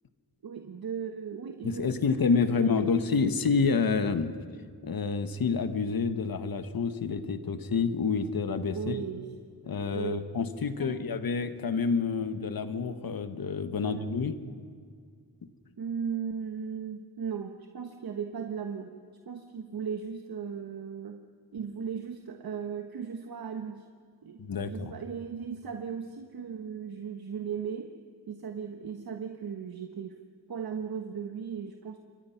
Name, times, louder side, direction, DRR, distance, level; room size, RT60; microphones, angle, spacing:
voice 1, 0.4-3.3 8.7-9.3 9.9-10.3 10.8-11.0 13.8-14.2 15.8-18.9 19.2-21.2 21.5-23.9 24.2-27.9 28.3-30.2 30.5-32.0, right 7 dB, 65° right, 5 dB, 1.4 m, -37 dB
voice 2, 1.6-4.3 4.8-9.0 9.6-14.3 24.4-24.9, left 5 dB, 60° left, 10 dB, 1.5 m, -28 dB
28.5 x 23.5 x 5.9 m, 2.1 s
wide cardioid pair, 155°, 39 cm